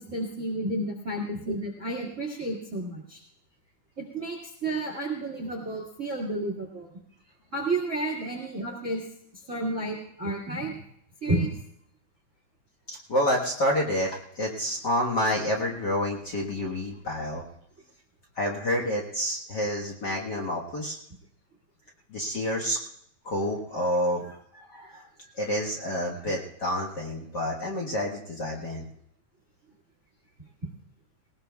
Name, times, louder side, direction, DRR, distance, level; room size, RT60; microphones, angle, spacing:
voice 1, 0.0-3.2 4.0-6.9 7.5-9.0 9.3-10.8 11.2-11.5, right 2 dB, 30° right, 1 dB, 1.5 m, -31 dB
voice 2, 13.1-17.4 18.4-21.0 22.1-22.8 23.2-25.0 25.4-28.8, equal, 60° left, -2 dB, 1.1 m, -28 dB
19.5 x 19.5 x 2.3 m, 0.71 s
omnidirectional pair, 4.0 m